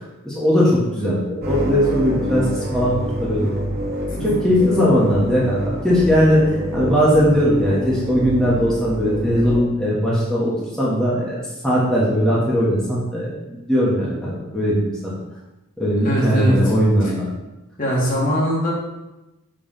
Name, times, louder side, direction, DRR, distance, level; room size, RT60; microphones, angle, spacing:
voice 1, 0.2-3.5 4.2-6.4 6.7-15.2 15.8-17.3, equal, 5° left, -8 dB, 1.2 m, -19 dB
sound 1, 1.4-9.6, equal, 50° right, 1.1 m, -27 dB
voice 2, 16.0-16.7 17.8-18.7, equal, 40° left, -5 dB, 1.5 m, -20 dB
5.3 x 3.4 x 5.7 m, 1.0 s
head